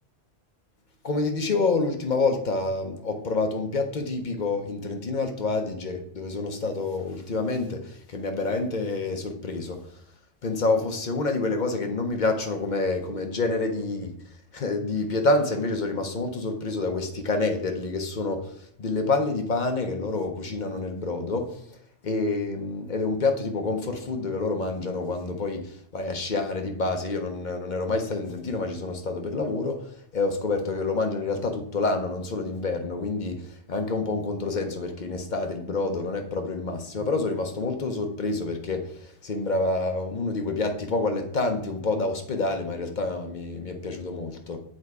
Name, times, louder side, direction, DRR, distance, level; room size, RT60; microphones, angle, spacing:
voice 1, 1.0-9.8 10.4-14.2 14.5-21.6 22.0-44.6, left 3 dB, 45° left, 4 dB, 0.8 m, -28 dB
7.4 x 3.5 x 4.7 m, 0.67 s
omnidirectional pair, 1.2 m